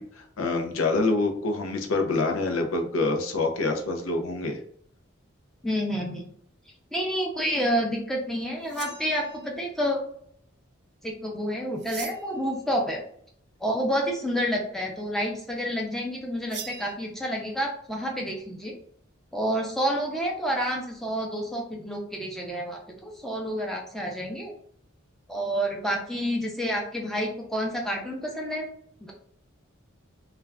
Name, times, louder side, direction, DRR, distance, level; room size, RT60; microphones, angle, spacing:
voice 1, 0.0-4.6, left 3 dB, 85° left, 4 dB, 0.5 m, -26 dB
voice 2, 5.6-6.3 6.9-10.0 11.0-13.0 13.6-18.7 19.3-24.5 25.3-28.7 29.0-29.1, equal, ahead, -1 dB, 0.5 m, -29 dB
sound 1, 8.6-9.6 11.8-12.5 16.5-16.9, right 7 dB, 55° right, 0.4 m, -41 dB
2.3 x 2.2 x 3.3 m, 0.65 s
head